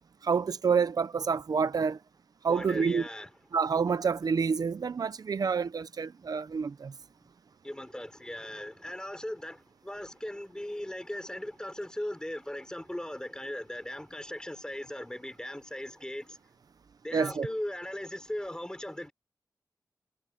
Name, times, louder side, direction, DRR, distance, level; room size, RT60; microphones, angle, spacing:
voice 1, 0.2-2.0 2.4-3.1 3.5-6.9 17.1-17.5, right 5 dB, 70° right, 0.8 m, -28 dB
voice 2, 2.5-3.3 6.2-6.3 7.6-16.4 17.0-19.1, left 1 dB, 10° left, 4.4 m, -38 dB
cardioid pair, 60°, 7 cm